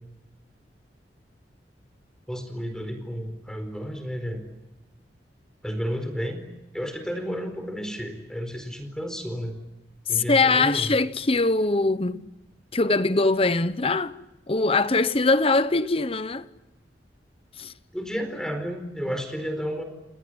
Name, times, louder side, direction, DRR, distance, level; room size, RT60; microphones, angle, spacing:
voice 1, 2.3-4.4 5.6-6.5 6.7-9.6 10.1-10.9 17.9-19.8, equal, 5° left, 4.5 m, -32 dB
voice 2, 10.1-12.2 12.7-14.2 14.5-16.5 17.6-17.7, left 3 dB, 35° left, 1.0 m, -22 dB
29.5 x 20.0 x 9.8 m
head